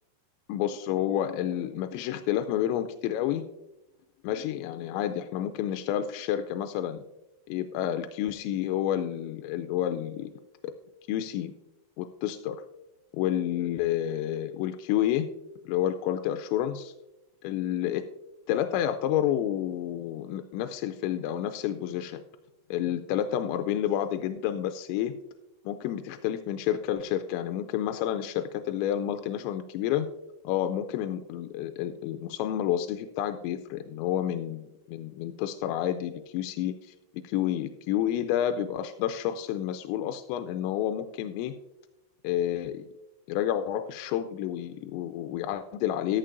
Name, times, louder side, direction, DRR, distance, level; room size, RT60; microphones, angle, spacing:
voice 1, 0.5-3.4 4.2-7.0 7.5-10.3 10.6-10.7 11.1-11.5 12.0-12.6 13.1-15.3 15.7-16.9 17.4-18.0 18.5-22.2 22.7-25.1 25.7-30.1 30.4-36.9 37.2-41.5 42.2-42.9 43.3-46.2, left 11 dB, 90° left, 7 dB, 2.9 m, -29 dB
13.0 x 11.0 x 2.5 m, 0.93 s
omnidirectional pair, 5.1 m